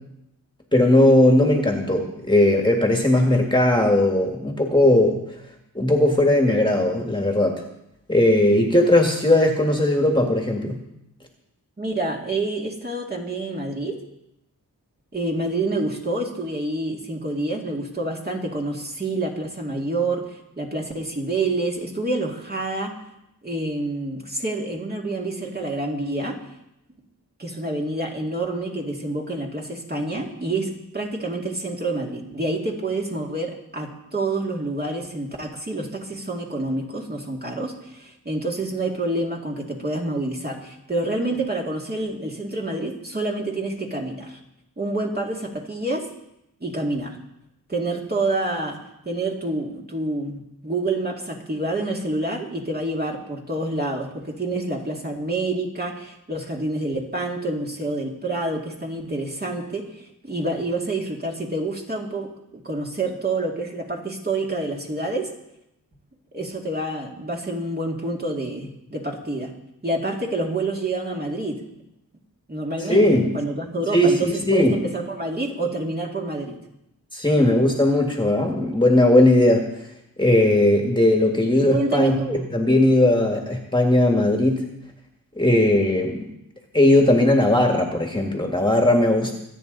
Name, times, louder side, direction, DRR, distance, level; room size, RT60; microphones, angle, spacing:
voice 1, 0.7-5.2 5.8-7.6 8.1-10.8 72.9-73.3 73.9-74.8 77.1-79.6 80.2-82.2 82.5-84.6 85.4-86.3 86.7-89.4, left 1 dB, 15° left, 2 dB, 1.9 m, -18 dB
voice 2, 11.8-14.0 15.1-22.9 23.4-26.4 27.4-44.4 44.8-46.1 46.6-47.2 47.7-48.8 49.1-65.3 66.3-69.5 69.8-71.6 72.5-76.6 81.6-82.5 89.2-89.4, right 2 dB, 25° right, -1 dB, 2.4 m, -28 dB
25.5 x 8.9 x 4.0 m, 0.84 s
wide cardioid pair, 100°, 35 cm